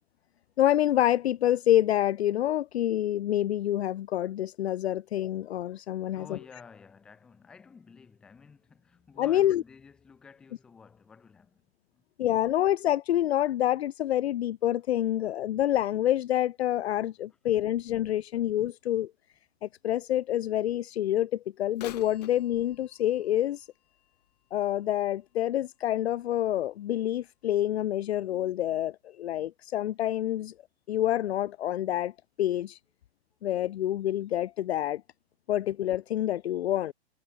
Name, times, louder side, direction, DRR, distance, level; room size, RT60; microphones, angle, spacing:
voice 1, 0.6-6.4 9.2-9.6 12.2-19.1 19.6-23.7 24.5-30.5 30.9-32.1 32.4-32.8 33.4-35.0 35.5-36.9, left 12 dB, 75° left, 0.5 m, -27 dB
voice 2, 6.0-12.1, left 5 dB, 5° left, 0.5 m, -52 dB
Bird vocalization bird call bird song / Telephone, 21.7-25.5 26.1-26.2 27.0-27.1 27.8-27.9, left 13 dB, 40° left, 3.4 m, -50 dB
hypercardioid pair, 170°, 32 cm